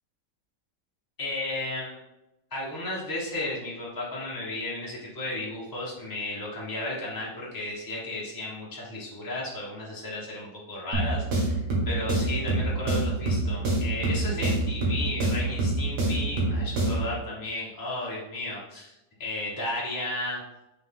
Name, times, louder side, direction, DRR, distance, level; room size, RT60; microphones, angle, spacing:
voice 1, 1.2-2.0 2.5-20.4, left 2 dB, 15° left, -5 dB, 0.9 m, -34 dB
sound 1, 10.9-17.1, right 2 dB, 65° right, 2.1 m, -26 dB
6.4 x 4.5 x 3.7 m, 0.94 s
omnidirectional pair, 1.9 m